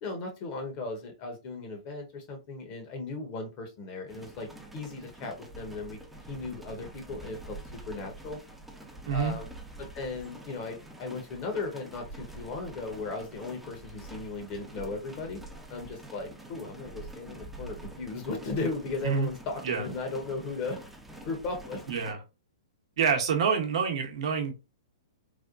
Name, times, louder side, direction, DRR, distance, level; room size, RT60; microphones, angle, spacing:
voice 1, 0.0-6.0 6.3-8.4 9.1-9.5 9.8-15.4 15.7-20.8 21.2-21.8, left 3 dB, 40° left, 4 dB, 1.1 m, -36 dB
sound 1, 4.1-22.1, right 2 dB, 5° right, 0.6 m, -46 dB
voice 2, 9.1-9.4 19.0-19.3 19.6-19.9 21.9-22.2 23.0-24.5, right 6 dB, 65° right, 3 dB, 0.9 m, -27 dB
3.4 x 2.2 x 2.5 m, 0.27 s
hypercardioid pair, 125°, 3 cm